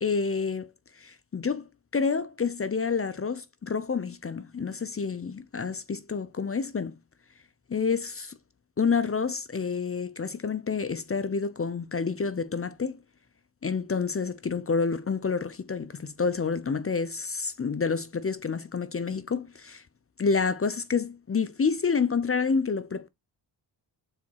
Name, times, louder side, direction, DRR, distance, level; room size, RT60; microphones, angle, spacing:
voice 1, 0.0-7.0 7.7-8.3 8.8-13.0 13.6-19.8 20.2-23.1, left 5 dB, 30° left, 0.6 m, -28 dB
7.1 x 4.1 x 4.6 m
cardioid pair, 70°, 45 cm